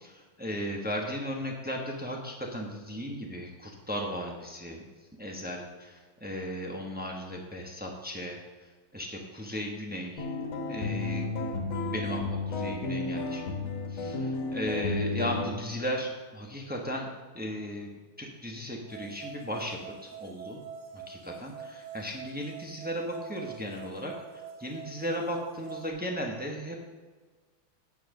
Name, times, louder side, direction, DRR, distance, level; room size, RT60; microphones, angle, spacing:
voice 1, 0.0-4.8 5.2-8.4 8.9-10.3 10.7-11.3 11.6-17.1 17.3-17.9 18.2-20.6 21.1-26.8, equal, 10° right, 0 dB, 0.6 m, -36 dB
sound 1, 10.2-15.5, left 3 dB, 80° left, 2.0 m, -32 dB
sound 2, 18.9-25.9, right 7 dB, 80° right, 1.8 m, -45 dB
9.2 x 5.5 x 6.5 m, 1.3 s
omnidirectional pair, 2.2 m